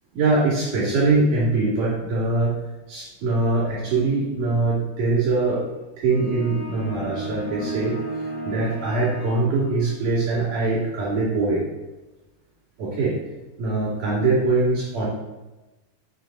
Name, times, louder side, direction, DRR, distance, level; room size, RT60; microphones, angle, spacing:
voice 1, 0.1-2.6 2.9-5.6 6.0-8.0 8.5-11.6 12.8-13.1 13.6-15.1, right 3 dB, 50° right, -7 dB, 3.6 m, -22 dB
sound 1, 6.1-10.1, right 2 dB, 70° left, 2.9 m, -34 dB
7.3 x 4.5 x 3.8 m, 1.1 s
omnidirectional pair, 5.3 m